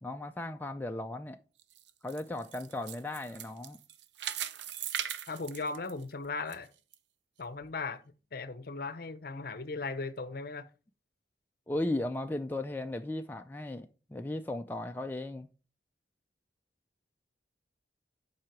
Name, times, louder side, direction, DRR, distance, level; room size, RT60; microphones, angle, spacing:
voice 1, 0.0-1.4 2.0-3.8 11.7-15.5, left 1 dB, 10° left, 0.3 m, -36 dB
sound 1, 1.6-6.6 6.9-7.0 7.6-7.7, right 9 dB, 75° right, 0.6 m, -39 dB
voice 2, 5.3-6.7 7.4-8.0 8.3-10.7, left 3 dB, 55° left, 0.7 m, -37 dB
7.5 x 4.9 x 4.6 m
head